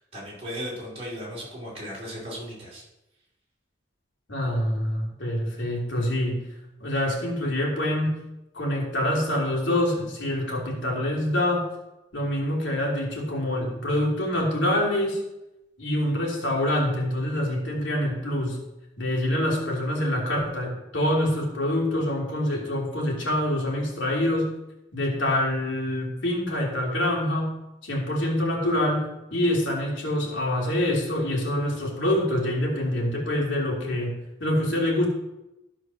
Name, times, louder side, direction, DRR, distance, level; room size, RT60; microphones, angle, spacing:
voice 1, 0.0-2.8, equal, 30° right, -6 dB, 4.6 m, -36 dB
voice 2, 4.3-6.4 6.8-8.2 8.5-11.7 12.1-15.2 15.8-18.6 19.0-24.5 24.9-27.6 27.8-35.1, left 1 dB, 80° left, -2 dB, 3.2 m, -26 dB
13.5 x 5.0 x 6.3 m, 0.94 s
head